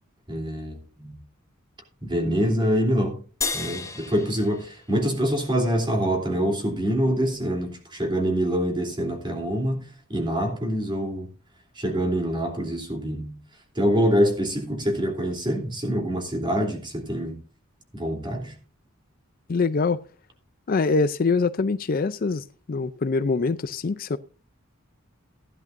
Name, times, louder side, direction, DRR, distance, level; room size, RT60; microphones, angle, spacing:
voice 1, 0.3-1.2 2.0-3.2 3.5-11.3 11.8-13.4 13.7-17.4 17.9-18.5, equal, 25° right, 3.1 m, -25 dB
sound 1, 3.4-6.0, left 4 dB, 15° left, 1.1 m, -34 dB
voice 2, 19.5-20.0 20.7-24.2, left 4 dB, 45° left, 0.5 m, -24 dB
16.0 x 11.0 x 2.6 m
head